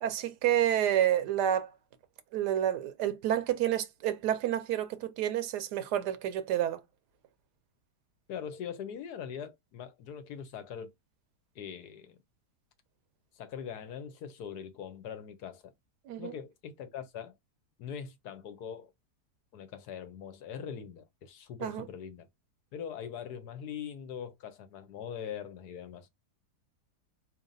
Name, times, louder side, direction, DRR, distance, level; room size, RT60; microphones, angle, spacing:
voice 1, 0.0-1.7 2.3-6.8 16.1-16.3 21.6-21.9, right 11 dB, 85° right, 1.2 m, -29 dB
voice 2, 8.3-10.9 11.5-12.2 13.3-15.7 16.2-17.4 17.8-18.9 19.5-22.3 22.7-26.1, left 8 dB, 75° left, 1.3 m, -42 dB
4.3 x 3.1 x 2.6 m
omnidirectional pair, 1.7 m